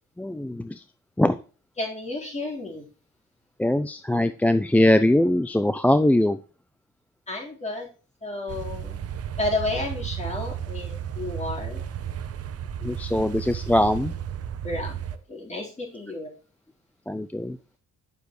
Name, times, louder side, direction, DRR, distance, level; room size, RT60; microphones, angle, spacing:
voice 1, 0.2-0.8 1.2-1.4 3.6-6.4 12.8-14.1 17.1-17.6, left 1 dB, 5° left, 11 dB, 0.4 m, -21 dB
voice 2, 1.8-2.8 7.3-7.9 8.2-9.0 9.4-11.8 14.6-15.0 15.3-16.3, left 2 dB, 25° left, -2 dB, 3.9 m, -31 dB
sound 1, 8.5-15.2, right 9 dB, 55° right, 0.8 m, -33 dB
9.5 x 6.6 x 3.1 m, 0.36 s
cardioid pair, 90°, 30 cm